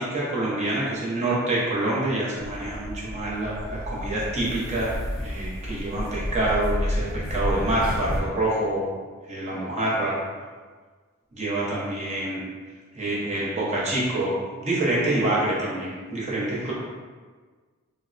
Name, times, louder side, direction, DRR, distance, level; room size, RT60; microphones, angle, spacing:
voice 1, 0.0-8.9 9.3-10.2 11.4-12.4 12.9-16.7, right 1 dB, 30° right, -6 dB, 0.7 m, -26 dB
sound 1, 2.4-8.2, equal, 40° left, 0.4 m, -31 dB
3.4 x 2.1 x 2.4 m, 1.5 s
head